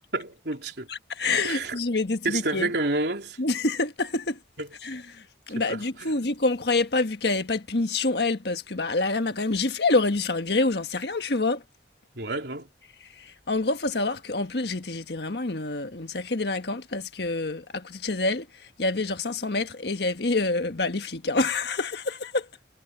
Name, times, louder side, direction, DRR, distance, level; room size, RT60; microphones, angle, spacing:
voice 1, 0.1-0.9 1.4-1.8 2.2-3.4 4.6-4.7 5.6-6.1 12.2-12.7, right 2 dB, 70° right, 3.6 m, -29 dB
voice 2, 0.9-2.7 3.4-4.4 4.8-5.0 5.5-11.6 13.5-18.5 18.8-22.4, left 3 dB, 65° left, 1.5 m, -27 dB
head